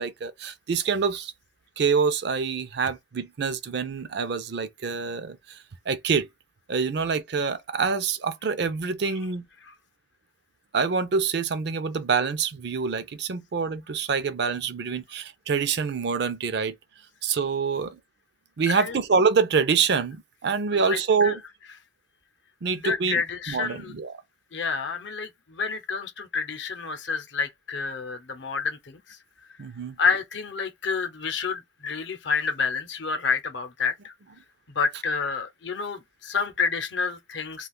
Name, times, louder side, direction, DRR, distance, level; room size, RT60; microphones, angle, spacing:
voice 1, 0.0-1.3 1.8-6.3 6.7-9.5 10.7-16.8 17.2-18.0 18.6-21.4 22.6-24.2 29.6-30.0, right 5 dB, 60° right, 0.4 m, -26 dB
voice 2, 20.9-21.3 22.8-23.9 24.5-29.0 30.0-34.1 34.7-37.7, left 5 dB, 70° left, 0.7 m, -29 dB
2.4 x 2.3 x 3.6 m
head